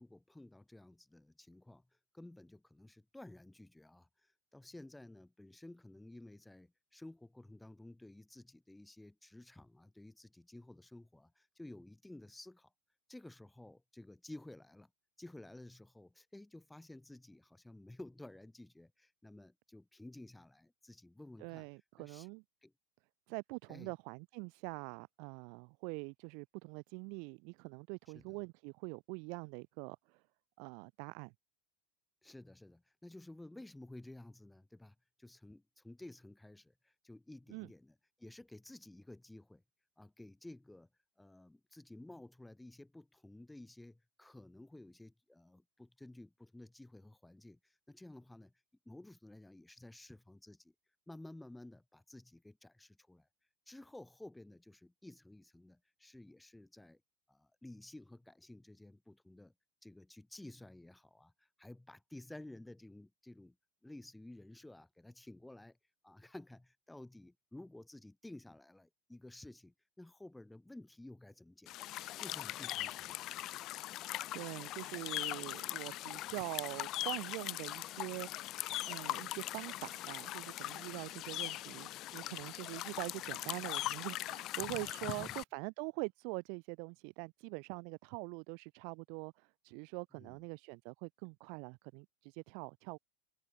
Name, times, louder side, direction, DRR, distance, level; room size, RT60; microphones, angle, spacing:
voice 1, 0.0-1.8 2.1-12.7 13.1-14.9 15.2-21.7 22.0-22.3 22.6-22.7 23.7-23.9 28.1-28.4 32.2-39.6 40.0-40.9 41.2-48.5 48.9-50.7 51.1-53.3 53.7-57.0 57.3-59.5 59.8-63.6 63.8-65.8 66.0-71.7 72.2-73.6 85.1-85.4 90.1-90.4, left 1 dB, 5° left, 3.6 m, -54 dB
voice 2, 21.4-22.4 23.3-30.2 30.6-31.3 37.5-37.7 74.3-78.5 78.9-93.0, right 39 dB, 55° right, 1.1 m, -44 dB
sound 1, 71.7-85.4, left 15 dB, 40° left, 1.0 m, -41 dB
supercardioid pair, 150°, 0 cm